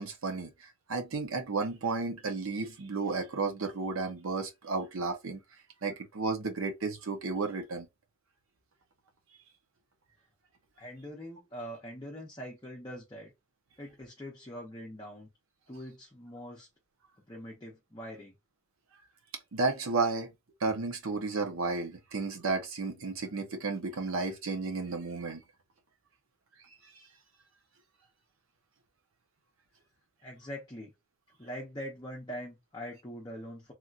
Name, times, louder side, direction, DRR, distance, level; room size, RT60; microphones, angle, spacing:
voice 1, 0.0-5.4 5.8-7.9 19.5-20.3 20.6-25.4, right 3 dB, 70° right, 0.7 m, -33 dB
voice 2, 10.8-13.3 13.8-15.3 15.7-16.7 17.3-18.3 30.2-30.9 31.4-33.7, equal, 20° left, 0.6 m, -43 dB
3.2 x 2.7 x 2.4 m
head